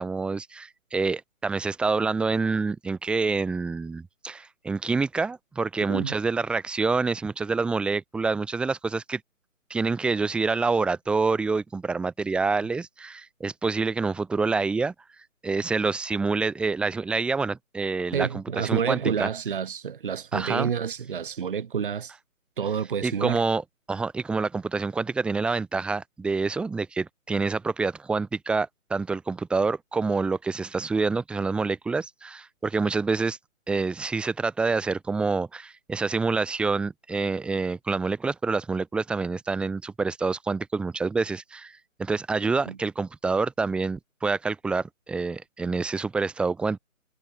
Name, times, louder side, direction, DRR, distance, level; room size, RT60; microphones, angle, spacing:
voice 1, 0.0-9.2 9.7-14.9 15.4-19.3 20.3-20.7 23.0-23.6 23.9-33.4 33.7-46.8, right 4 dB, ahead, 2.1 m, -27 dB
voice 2, 18.1-22.1 22.6-23.4 42.6-42.8, right 7 dB, 40° right, 3.4 m, -29 dB
figure-of-eight pair, 155°, 42 cm